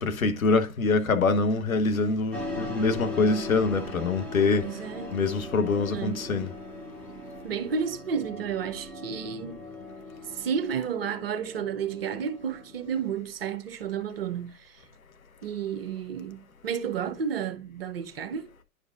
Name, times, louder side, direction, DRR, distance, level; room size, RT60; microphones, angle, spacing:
voice 1, 0.0-4.6 5.1-6.5, left 3 dB, 60° left, 1.3 m, -25 dB
sound 1, 2.3-13.1, left 2 dB, 5° left, 1.1 m, -39 dB
voice 2, 4.6-5.2 5.9-6.2 7.4-9.6 10.3-14.8 15.4-18.5, right 7 dB, 40° right, 0.9 m, -32 dB
10.0 x 5.1 x 2.4 m
figure-of-eight pair, 120°, 46 cm